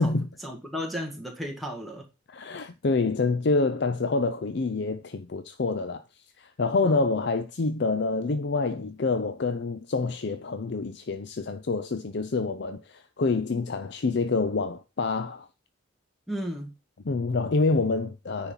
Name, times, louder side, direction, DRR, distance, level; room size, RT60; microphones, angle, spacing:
voice 1, 0.0-2.0 6.8-7.0 16.3-16.7, equal, ahead, 1.9 m, -34 dB
voice 2, 2.3-6.0 6.4-15.5 17.0-18.5, left 3 dB, 55° left, 0.5 m, -27 dB
9.7 x 4.3 x 5.6 m
head